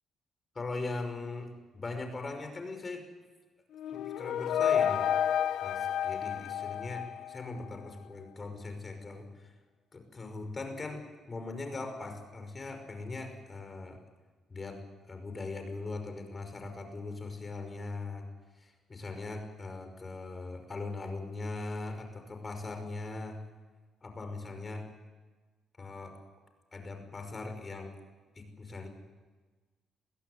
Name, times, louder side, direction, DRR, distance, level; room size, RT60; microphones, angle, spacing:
voice 1, 0.5-3.0 3.9-5.1 5.6-9.5 9.9-14.0 14.5-18.3 18.6-23.4 24.0-24.9 25.8-26.2 26.7-27.9 28.4-28.9, left 3 dB, 30° left, 6 dB, 5.5 m, -40 dB
sound 1, 3.7-7.7, left 9 dB, 80° left, 0.9 m, -30 dB
22.0 x 16.0 x 9.8 m, 1.3 s
cardioid pair, 90°, 0 cm